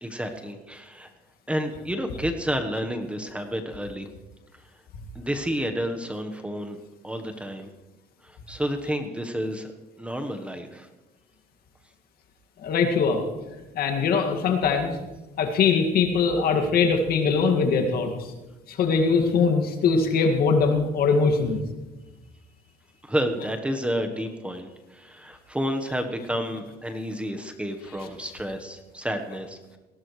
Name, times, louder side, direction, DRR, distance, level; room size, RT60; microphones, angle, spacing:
voice 1, 0.0-1.1 1.5-4.1 5.1-6.8 7.0-7.7 8.2-9.7 10.0-10.9 23.0-29.8, equal, 5° right, 5 dB, 1.2 m, -30 dB
voice 2, 12.6-13.2 13.8-14.9 15.4-18.3 18.7-21.6 28.0-28.1, left 5 dB, 65° left, 4 dB, 2.1 m, -22 dB
20.0 x 17.0 x 3.2 m, 1.1 s
cardioid pair, 110°, 17 cm